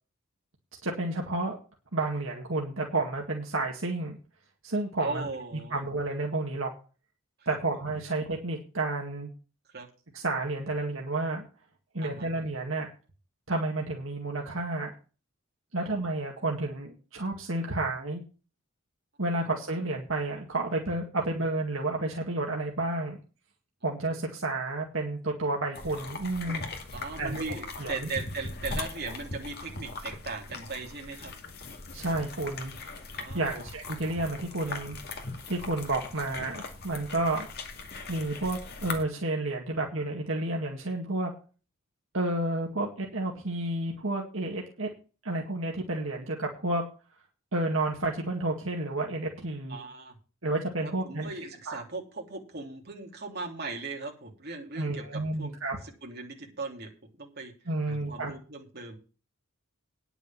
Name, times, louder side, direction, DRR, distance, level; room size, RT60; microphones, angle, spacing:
voice 1, 0.8-1.6 1.9-4.2 4.6-5.2 5.7-6.7 7.5-9.3 10.1-11.4 11.9-12.9 13.5-14.9 15.7-18.2 19.2-23.2 23.8-26.6 27.2-27.4 27.8-28.1 31.9-32.7 33.3-35.0 35.5-37.5 38.1-41.3 42.1-44.9 45.2-46.8 47.5-49.8 50.4-51.3 51.7-51.8 54.8-55.8 57.7-58.3, right 2 dB, 70° right, 0 dB, 2.0 m, -31 dB
voice 2, 5.0-5.8 7.4-7.6 9.7-9.9 12.0-12.3 26.9-31.3 33.1-33.5 49.7-50.1 50.8-55.6 56.0-56.9 57.2-57.5 57.8-59.0, right 3 dB, 50° right, 1 dB, 3.3 m, -38 dB
sound 1, 25.8-39.0, left 3 dB, 50° left, 2.2 m, -40 dB
10.0 x 7.0 x 7.4 m, 0.35 s
head